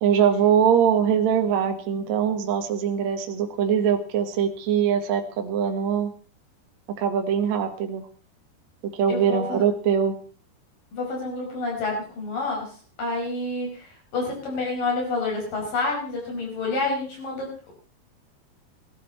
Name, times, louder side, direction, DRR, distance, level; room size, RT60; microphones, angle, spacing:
voice 1, 0.0-6.1 7.0-8.0 8.9-10.2, right 8 dB, 55° right, 5 dB, 2.3 m, -22 dB
voice 2, 9.1-9.6 10.9-17.7, left 3 dB, 55° left, 0 dB, 7.1 m, -29 dB
18.5 x 12.0 x 4.2 m, 0.37 s
omnidirectional pair, 4.6 m